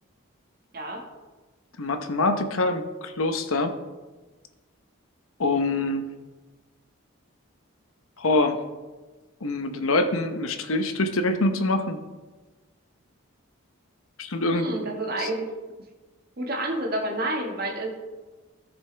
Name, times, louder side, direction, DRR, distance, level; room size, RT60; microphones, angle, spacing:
voice 1, 1.8-3.8 5.4-6.0 8.2-8.6 9.4-12.0 14.2-14.7 15.2-15.3, left 2 dB, 85° left, 8 dB, 0.9 m, -25 dB
voice 2, 14.5-15.5 16.4-18.0, right 1 dB, 45° right, 0 dB, 1.7 m, -29 dB
14.0 x 7.0 x 3.4 m, 1.2 s
head